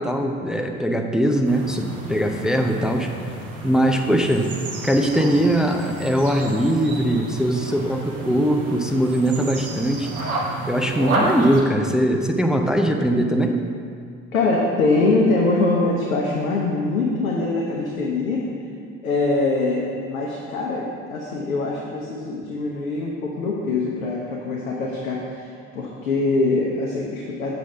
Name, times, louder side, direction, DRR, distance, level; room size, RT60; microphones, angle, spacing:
voice 1, 0.0-3.1 3.6-4.5 4.8-10.1 10.7-13.6, right 1 dB, ahead, 3 dB, 0.4 m, -21 dB
sound 1, 1.4-11.6, right 2 dB, 80° right, 1.0 m, -31 dB
voice 2, 14.3-18.5 19.0-25.5 25.7-27.5, left 3 dB, 80° left, -2 dB, 0.8 m, -23 dB
7.0 x 3.9 x 5.7 m, 2.2 s
figure-of-eight pair, 60°, 41 cm